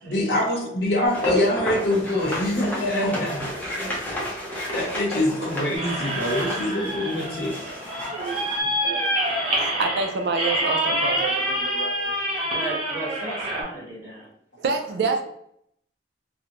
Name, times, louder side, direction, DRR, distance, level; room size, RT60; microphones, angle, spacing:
voice 1, 0.0-4.0 4.7-7.5 8.4-8.5, left 1 dB, 70° left, -2 dB, 0.8 m, -25 dB
sound 1, 1.0-8.6, left 1 dB, 10° left, 0.6 m, -32 dB
voice 2, 3.7-4.9 8.1-12.2 14.6-15.2, right 4 dB, 65° right, 5 dB, 0.3 m, -29 dB
sound 2, 5.7-13.6, right 1 dB, 35° right, 0.8 m, -27 dB
voice 3, 12.5-14.3, right 1 dB, 15° right, -8 dB, 1.1 m, -34 dB
2.5 x 2.1 x 2.8 m, 0.71 s
head